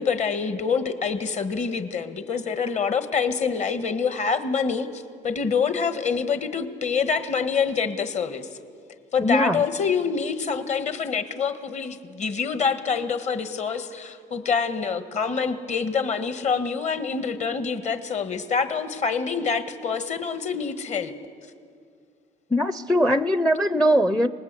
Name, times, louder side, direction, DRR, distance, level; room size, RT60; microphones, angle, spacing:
voice 1, 0.0-8.5 9.1-21.1, left 5 dB, 45° left, 9 dB, 1.5 m, -26 dB
voice 2, 9.2-9.6 22.5-24.3, equal, 5° left, 13 dB, 0.5 m, -21 dB
26.0 x 19.5 x 8.2 m, 2.2 s
cardioid pair, 110°, 17 cm